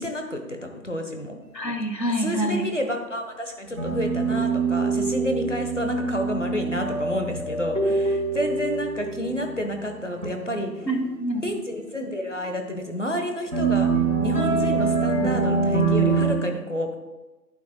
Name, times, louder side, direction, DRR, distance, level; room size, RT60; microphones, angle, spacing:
voice 1, 0.0-1.3 2.2-10.7 11.4-13.9 14.2-17.0, equal, 45° left, 4 dB, 1.1 m, -30 dB
voice 2, 1.5-2.6 10.8-11.5, right 1 dB, 90° left, 5 dB, 1.7 m, -26 dB
sound 1, 3.7-9.7 10.2-10.8 11.9-12.0 13.5-16.3, right 4 dB, 50° right, 1.4 m, -24 dB
11.0 x 8.9 x 2.2 m, 1.1 s
figure-of-eight pair, 175°, 49 cm